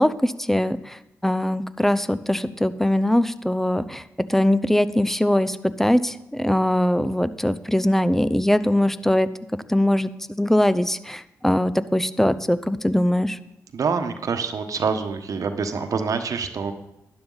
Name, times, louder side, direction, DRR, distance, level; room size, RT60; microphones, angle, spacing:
voice 1, 0.0-4.0 4.3-9.3 9.7-10.1 10.4-13.4, left 1 dB, 5° left, 13 dB, 0.6 m, -21 dB
voice 2, 13.7-16.7, right 5 dB, 65° right, 7 dB, 1.2 m, -26 dB
12.0 x 9.8 x 4.0 m, 0.88 s
supercardioid pair, 45°, 6 cm